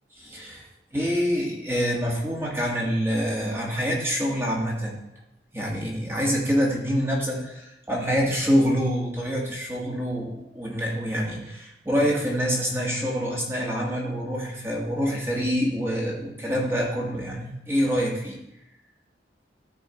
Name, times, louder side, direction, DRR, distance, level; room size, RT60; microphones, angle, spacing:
voice 1, 0.2-5.0 5.5-18.4, equal, 15° right, -3 dB, 1.8 m, -26 dB
13.0 x 4.6 x 4.5 m, 0.83 s
head